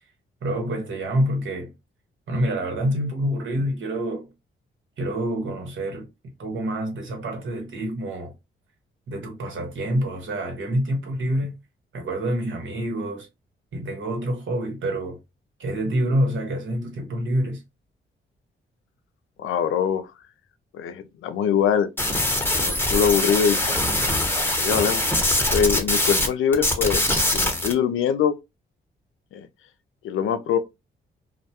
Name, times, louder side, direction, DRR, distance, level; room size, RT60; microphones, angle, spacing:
voice 1, 0.4-1.7 2.3-4.3 5.0-6.1 6.4-8.3 9.1-11.5 11.9-13.3 13.7-15.2 15.6-17.6, right 1 dB, 70° right, 1.1 m, -27 dB
voice 2, 19.4-20.1 20.7-21.9 22.5-23.8 24.6-25.1 25.5-28.4 29.3-29.5 30.0-30.6, left 7 dB, 80° left, 0.4 m, -23 dB
sound 1, 22.0-26.3 26.5-27.7, left 1 dB, 10° left, 0.8 m, -22 dB
2.3 x 2.2 x 2.8 m
cardioid pair, 65°, 21 cm